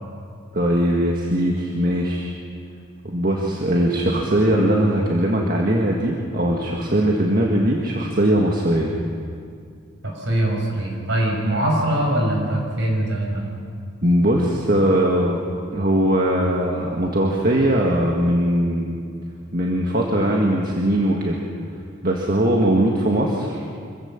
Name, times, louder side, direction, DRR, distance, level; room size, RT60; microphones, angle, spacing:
voice 1, 0.5-2.4 3.0-8.9 14.0-15.4 15.7-19.0 19.5-21.4 22.0-23.6, right 1 dB, 45° right, -1 dB, 1.7 m, -20 dB
voice 2, 10.0-13.5, right 1 dB, 65° right, 0 dB, 5.6 m, -22 dB
25.5 x 15.5 x 7.3 m, 2.3 s
head